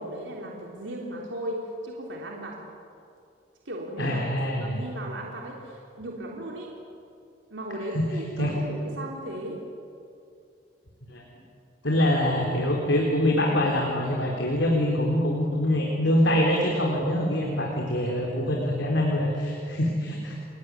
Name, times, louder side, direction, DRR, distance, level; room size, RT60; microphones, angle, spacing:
voice 1, 0.0-2.6 3.7-6.8 7.5-9.6, right 1 dB, 85° right, -2 dB, 3.7 m, -36 dB
voice 2, 4.0-4.8 7.9-8.1 8.4-8.5 11.1-11.2 11.8-20.3, left 1 dB, 75° left, -1 dB, 4.1 m, -24 dB
30.0 x 20.5 x 9.6 m, 2.5 s
head